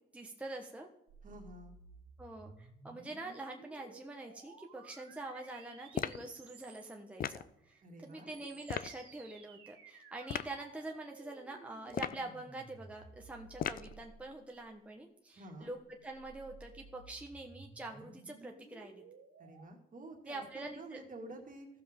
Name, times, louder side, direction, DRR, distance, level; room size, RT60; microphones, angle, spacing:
voice 1, 0.1-0.9 2.2-15.8 16.0-19.0 20.3-21.0, right 2 dB, 5° right, 1 dB, 1.1 m, -45 dB
sound 1, 1.1-7.2 8.0-14.7 15.7-19.6, right 4 dB, 80° right, 2.0 m, -56 dB
voice 2, 1.2-1.8 7.8-8.3 15.3-15.7 19.4-21.7, right 2 dB, 40° right, 2 dB, 2.1 m, -50 dB
sound 2, 5.9-6.3 7.2-7.5 8.7-8.9 10.3-10.5 11.9-12.3 13.6-13.9, left 9 dB, 45° left, 0.4 m, -37 dB
15.5 x 6.9 x 3.7 m, 0.83 s
cardioid pair, 90°, 20 cm